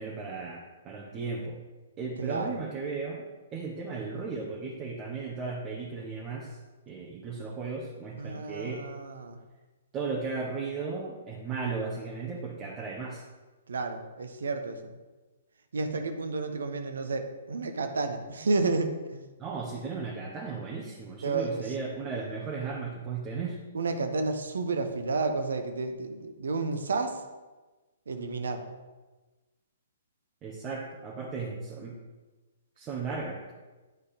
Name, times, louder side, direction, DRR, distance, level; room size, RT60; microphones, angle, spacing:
voice 1, 0.0-1.5 2.0-3.2 3.5-6.6 6.9-8.8 9.9-13.2 19.4-23.6 30.4-32.0 32.8-33.5, right 4 dB, 25° right, -3 dB, 1.2 m, -35 dB
voice 2, 2.2-2.6 8.2-9.4 13.7-14.9 15.7-19.2 21.2-21.7 23.7-27.2 28.1-28.6, right 3 dB, 70° right, 6 dB, 1.1 m, -31 dB
9.4 x 4.2 x 5.2 m, 1.2 s
figure-of-eight pair, 120°, 0 cm